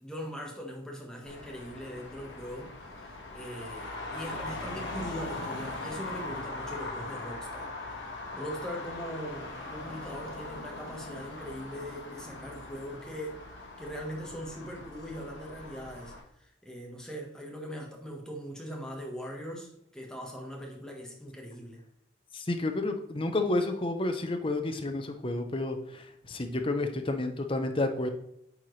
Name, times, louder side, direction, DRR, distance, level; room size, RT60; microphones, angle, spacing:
voice 1, 0.0-7.7 8.0-13.4 13.8-16.1 16.4-21.8, equal, 5° left, 0 dB, 1.2 m, -41 dB
Traffic noise roadway noise, 1.3-16.2, left 2 dB, 70° left, 1.4 m, -40 dB
voice 2, 22.3-28.1, left 2 dB, 25° left, 6 dB, 0.7 m, -30 dB
8.7 x 4.4 x 3.2 m, 0.74 s
head